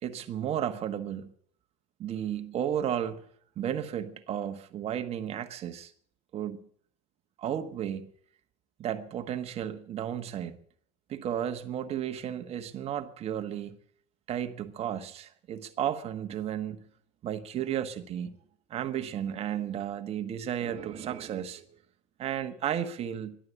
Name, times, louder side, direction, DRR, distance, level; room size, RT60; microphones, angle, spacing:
voice 1, 0.0-1.3 2.0-3.2 3.6-5.9 6.3-6.6 7.4-8.1 8.8-10.6 11.1-13.8 14.3-16.8 17.2-18.3 18.7-21.6 22.2-23.4, right 10 dB, 35° right, 1.3 m, -33 dB
12.5 x 11.5 x 9.2 m
supercardioid pair, 140°, 17 cm